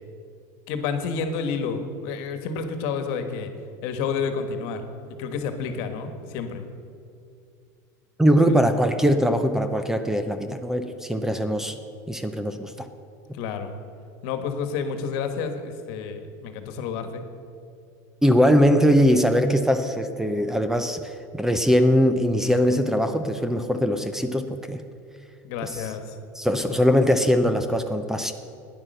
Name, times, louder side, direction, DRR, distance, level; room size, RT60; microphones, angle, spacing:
voice 1, 0.7-3.5 3.8-4.8 5.2-6.6 8.5-8.6 13.3-13.7 14.2-17.2 25.4-26.2 26.5-26.9, left 5 dB, 65° left, 7 dB, 1.4 m, -30 dB
voice 2, 8.2-11.8 12.1-12.9 18.2-24.8 25.6-25.9 26.3-28.3, equal, 5° right, 9 dB, 0.6 m, -21 dB
12.0 x 9.9 x 6.6 m, 2.4 s
supercardioid pair, 130°, 9 cm